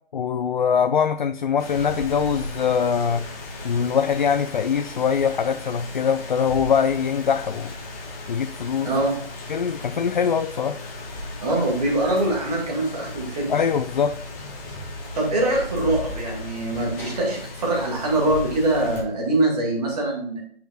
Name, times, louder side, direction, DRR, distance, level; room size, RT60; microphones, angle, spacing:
voice 1, 0.1-3.3 3.6-7.8 8.3-8.9 9.5-10.8 13.5-14.2, left 7 dB, 55° left, 0.4 m, -23 dB
Rain, 1.6-19.0, left 2 dB, 20° left, 1.1 m, -36 dB
voice 2, 11.4-13.5 15.2-20.4, right 1 dB, 40° right, 2.2 m, -23 dB
8.9 x 5.7 x 2.4 m
figure-of-eight pair, 155°, 29 cm